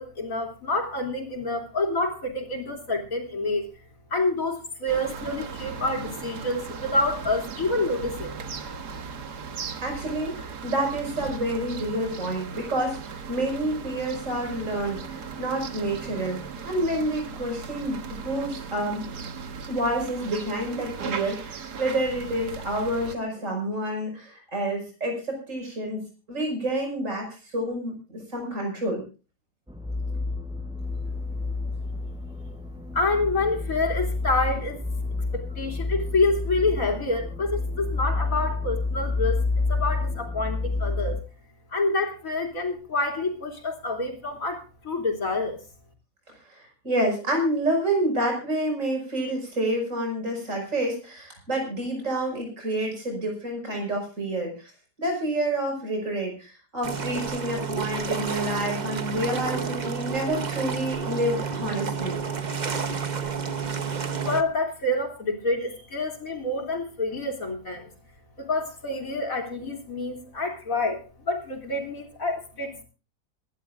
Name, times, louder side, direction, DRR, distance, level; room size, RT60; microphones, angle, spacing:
voice 1, 0.0-3.7 4.1-8.4 32.9-34.8 35.3-39.4 39.7-41.2 41.7-45.6 64.2-67.9 68.4-72.8, left 2 dB, 55° left, 2 dB, 3.5 m, -27 dB
sound 1, 4.9-23.1, right 5 dB, 85° right, 1.9 m, -37 dB
voice 2, 9.8-19.1 19.7-26.0 26.3-29.0 46.3-54.7 55.0-62.2, right 1 dB, 50° right, 1 dB, 5.8 m, -28 dB
sound 2, 29.7-41.2, left 3 dB, 5° right, 0.4 m, -29 dB
sound 3, 56.8-64.4, right 6 dB, 35° right, 0.9 m, -30 dB
26.0 x 11.5 x 2.5 m, 0.34 s
omnidirectional pair, 1.7 m